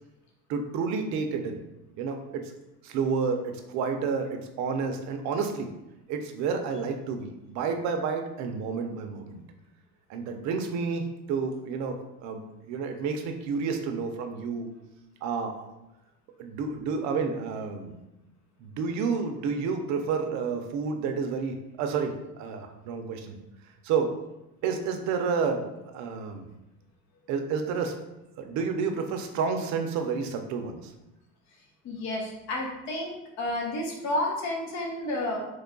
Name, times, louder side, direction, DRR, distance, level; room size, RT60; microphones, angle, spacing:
voice 1, 0.5-1.6 2.0-2.5 2.8-5.7 6.1-9.4 10.1-12.4 12.7-14.7 15.2-15.6 16.4-17.9 18.6-23.3 23.8-24.2 24.6-26.5 27.3-28.0 28.4-30.9, right 5 dB, 60° right, 5 dB, 0.5 m, -30 dB
voice 2, 31.8-35.5, left 1 dB, 60° left, 0 dB, 1.0 m, -31 dB
3.2 x 2.2 x 3.8 m, 0.96 s
cardioid pair, 150°, 32 cm